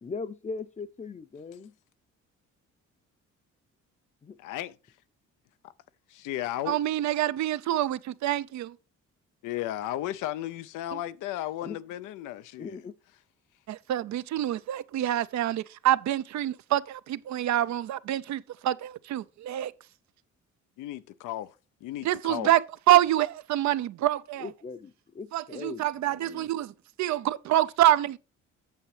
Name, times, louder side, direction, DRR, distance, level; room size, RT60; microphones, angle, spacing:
voice 1, 0.0-1.7 4.2-4.4 11.6-11.8 12.6-12.9 24.4-26.5, left 4 dB, 25° left, 0.6 m, -39 dB
voice 2, 4.4-4.8 6.1-6.8 9.4-12.8 20.8-21.5 21.8-22.5, left 13 dB, 90° left, 0.6 m, -34 dB
voice 3, 6.7-8.8 10.9-11.0 13.7-19.7 22.0-22.6 22.9-24.5 25.3-26.7 27.0-28.2, right 13 dB, 65° right, 0.5 m, -26 dB
8.5 x 7.2 x 3.2 m
cardioid pair, 90°, 30 cm